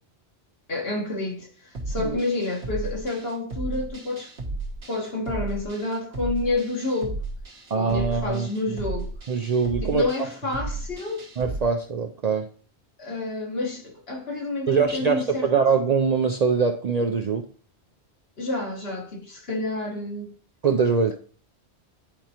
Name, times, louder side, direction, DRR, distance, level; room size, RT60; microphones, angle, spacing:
voice 1, 0.7-1.5 1.9-4.3 4.9-7.2 7.7-9.1 9.8-11.2 13.0-15.5 18.4-20.3, left 2 dB, 60° left, 1.8 m, -29 dB
sound 1, 1.7-11.6, right 2 dB, 80° right, 1.6 m, -34 dB
voice 2, 7.7-8.5 9.3-10.3 11.4-12.5 14.7-17.5 20.6-21.1, right 5 dB, 55° right, 0.5 m, -23 dB
10.5 x 4.5 x 2.9 m
omnidirectional pair, 1.1 m